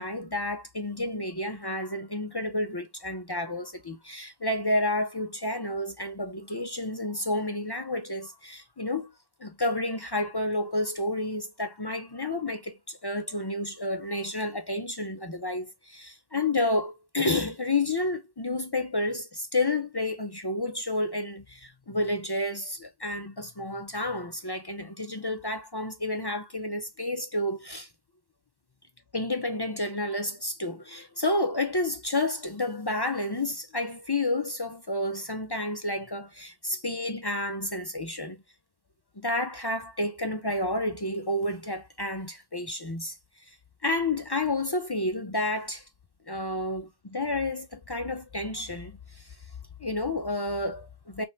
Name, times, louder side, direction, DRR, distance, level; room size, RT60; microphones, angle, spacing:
voice 1, 0.0-9.1 9.4-27.9 29.1-38.4 39.2-43.2 43.4-43.6 43.8-45.9 46.3-49.4 49.8-51.2, left 2 dB, 35° left, 0.4 m, -30 dB
4.1 x 3.5 x 3.1 m
omnidirectional pair, 1.1 m